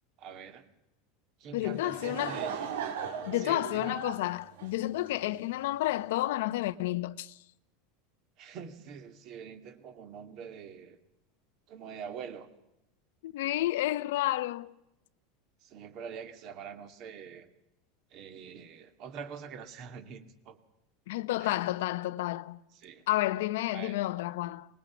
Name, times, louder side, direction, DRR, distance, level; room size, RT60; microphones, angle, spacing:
voice 1, 0.2-0.7 1.4-2.5 3.3-4.0 8.4-11.0 11.7-12.5 15.6-17.5 18.1-20.6 21.4-21.6 22.7-23.0 23.7-24.0, right 7 dB, 35° right, 2.2 m, -44 dB
voice 2, 1.5-2.4 3.3-7.4 13.2-14.7 21.1-22.6 23.1-24.7, left 16 dB, 70° left, 0.9 m, -31 dB
Laughter / Crowd, 1.6-5.4, right 7 dB, 80° right, 3.8 m, -38 dB
24.5 x 20.5 x 7.1 m
supercardioid pair, 170°, 0 cm